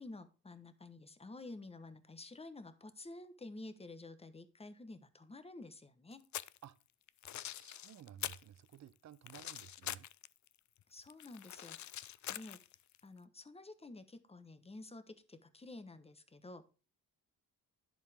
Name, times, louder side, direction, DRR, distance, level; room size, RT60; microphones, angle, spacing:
voice 1, 0.0-6.3 10.9-12.6 13.0-16.6, left 2 dB, 15° left, 1.0 m, -51 dB
sound 1, 6.1-6.6 7.1-8.5 8.7-10.5 10.8-13.0, left 12 dB, 55° left, 0.4 m, -44 dB
voice 2, 7.6-10.1, right 10 dB, 50° right, 0.6 m, -55 dB
10.5 x 7.3 x 3.5 m
cardioid pair, 115°, 35 cm